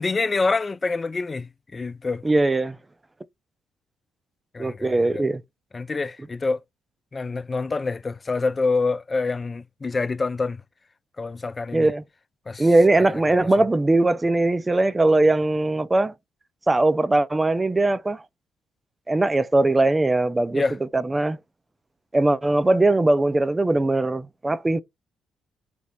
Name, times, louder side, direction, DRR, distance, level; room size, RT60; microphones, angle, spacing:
voice 1, 0.0-2.2 4.5-5.2 5.7-6.6 7.1-10.6 11.2-11.9 12.5-12.7 13.0-13.2 20.5-20.8, left 3 dB, 30° left, 0.3 m, -26 dB
voice 2, 2.2-2.8 4.6-5.4 11.7-12.0 12.6-16.1 16.7-18.2 19.1-20.6 20.9-21.4 22.1-24.8, right 2 dB, 20° right, 0.5 m, -20 dB
5.2 x 2.1 x 4.6 m
hypercardioid pair, 45°, 0 cm